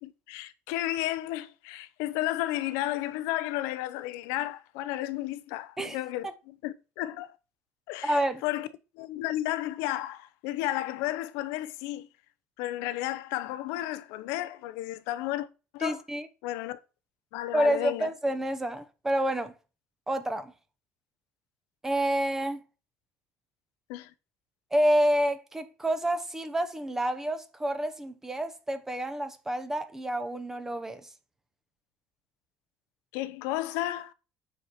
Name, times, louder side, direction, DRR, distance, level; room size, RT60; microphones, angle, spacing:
voice 1, 0.0-7.3 7.9-8.7 9.0-12.1 12.6-15.5 15.7-16.0 16.4-16.8 17.3-18.1 23.9-24.1 33.1-34.1, left 15 dB, 90° left, 0.6 m, -33 dB
voice 2, 8.0-8.4 15.8-16.3 17.5-19.5 20.1-20.5 21.8-22.6 24.7-31.0, right 1 dB, 10° right, 0.8 m, -28 dB
8.4 x 4.6 x 4.2 m
cardioid pair, 160°, 5 cm